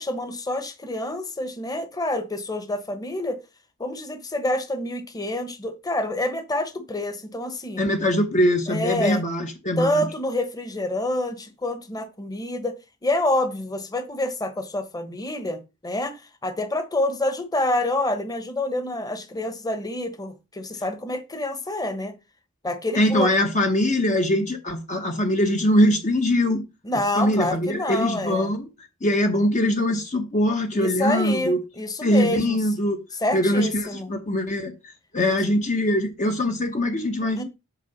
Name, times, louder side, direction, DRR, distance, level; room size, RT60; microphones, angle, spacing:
voice 1, 0.0-3.4 3.8-7.8 8.7-9.2 9.8-22.1 22.6-23.3 26.8-28.5 30.7-32.6 33.2-34.1 35.2-35.4 37.4-37.5, left 1 dB, 15° left, 1.2 m, -27 dB
voice 2, 7.8-10.1 22.9-26.6 27.2-31.6 32.0-33.0 33.3-37.4, left 1 dB, 35° left, 1.0 m, -22 dB
8.1 x 4.6 x 6.0 m
head